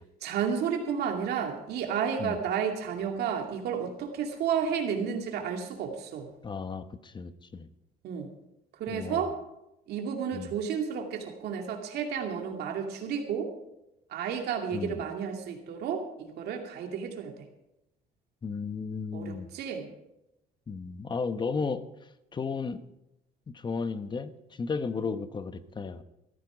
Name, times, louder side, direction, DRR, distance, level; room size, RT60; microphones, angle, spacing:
voice 1, 0.2-6.3 8.0-8.3 8.8-9.3 9.9-13.5 14.1-17.5 19.1-19.9, right 7 dB, 75° right, 3 dB, 2.4 m, -32 dB
voice 2, 6.4-7.7 8.9-9.3 10.3-10.5 14.7-15.0 18.4-19.5 20.7-21.8 22.3-22.8 23.5-26.0, left 5 dB, 25° left, 12 dB, 0.9 m, -34 dB
14.5 x 13.5 x 5.0 m, 0.90 s
cardioid pair, 110°, 17 cm